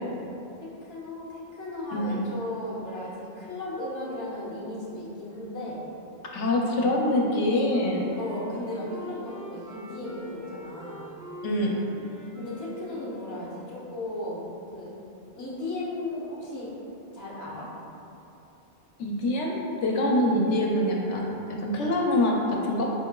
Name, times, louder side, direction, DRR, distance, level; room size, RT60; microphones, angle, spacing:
voice 1, 0.6-5.8 8.2-11.1 12.4-14.9 15.3-16.7 17.1-17.7 20.2-20.4, left 1 dB, 20° left, -7 dB, 0.7 m, -36 dB
voice 2, 6.3-8.2 11.4-11.8 19.0-19.5 19.8-22.9, left 1 dB, 80° left, -1 dB, 0.9 m, -25 dB
Wind instrument woodwind instrument, 7.3-14.0, equal, 45° right, 0.9 m, -44 dB
4.8 x 3.8 x 2.2 m, 2.8 s
omnidirectional pair, 1.2 m